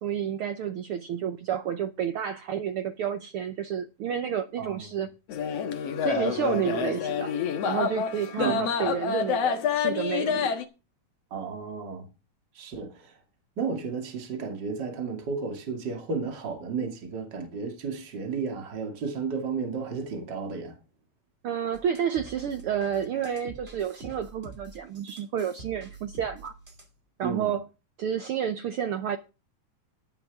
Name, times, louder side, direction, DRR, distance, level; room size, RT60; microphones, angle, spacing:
voice 1, 0.0-5.1 6.0-7.3 7.6-10.6 21.4-26.6 27.2-27.7 28.0-29.2, right 8 dB, 70° right, 1.3 m, -30 dB
sound 1, 5.3-10.6, left 7 dB, 65° left, 2.3 m, -28 dB
voice 2, 11.3-12.1 12.6-13.1 13.6-20.8 27.2-27.5, right 5 dB, 35° right, 2.8 m, -33 dB
sound 2, 21.7-27.0, right 2 dB, 20° right, 2.6 m, -47 dB
15.0 x 10.5 x 3.6 m
omnidirectional pair, 3.3 m